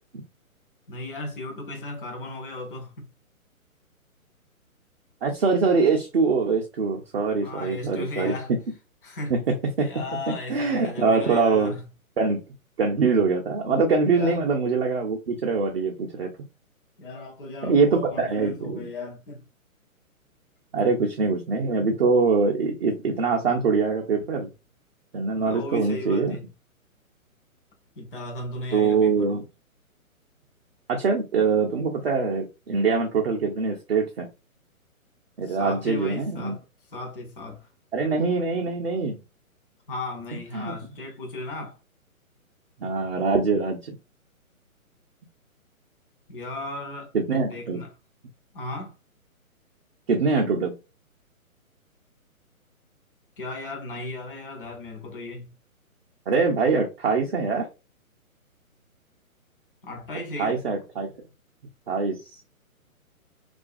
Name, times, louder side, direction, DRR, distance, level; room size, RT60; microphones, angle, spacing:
voice 1, 0.9-3.1 7.4-8.5 9.0-9.4 9.8-11.9 14.1-14.4 17.0-19.5 25.4-26.5 28.0-29.4 35.4-36.6 36.9-37.7 39.9-41.8 46.3-47.1 47.4-47.9 48.5-49.0 53.4-55.5 59.8-60.6, left 2 dB, 40° left, 0.7 m, -36 dB
voice 2, 5.2-8.3 9.8-9.9 10.5-11.8 12.2-12.4 12.8-16.3 17.6-18.9 20.7-24.5 25.1-26.4 28.7-29.4 30.9-34.3 35.4-36.5 37.9-39.2 40.5-40.7 42.8-44.0 47.1-47.8 50.1-50.7 56.3-57.7 60.4-61.1 61.9-62.2, right 4 dB, 45° right, 0.5 m, -23 dB
2.4 x 2.2 x 2.4 m
figure-of-eight pair, 130°, 43 cm